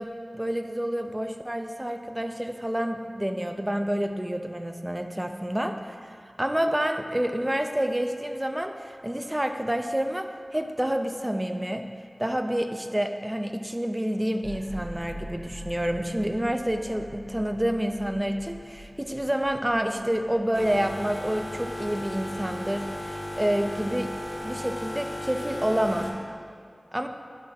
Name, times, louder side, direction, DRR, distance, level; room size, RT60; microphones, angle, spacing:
voice 1, 0.0-11.8 12.2-24.1 24.4-26.1 26.9-27.1, equal, 15° right, 6 dB, 0.3 m, -28 dB
sound 1, 14.4-23.8, equal, 65° right, 0.6 m, -45 dB
sound 2, 20.5-26.1, left 1 dB, 40° left, 0.8 m, -35 dB
6.3 x 3.7 x 4.1 m, 2.3 s
wide cardioid pair, 55°, 0 cm